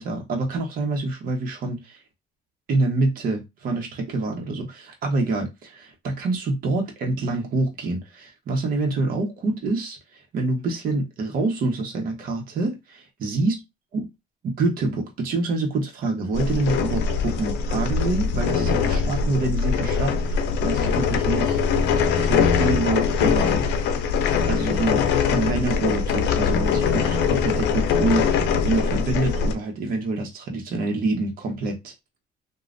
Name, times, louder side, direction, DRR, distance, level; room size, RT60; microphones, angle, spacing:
voice 1, 0.0-2.0 2.7-10.0 10.3-13.6 13.9-14.1 14.4-21.6 22.2-23.7 24.5-25.1 25.3-31.9, right 3 dB, 55° right, 0.9 m, -26 dB
sound 1, 16.3-29.5, left 6 dB, 85° left, 0.5 m, -22 dB
3.1 x 2.3 x 2.5 m
cardioid pair, 110°, 17 cm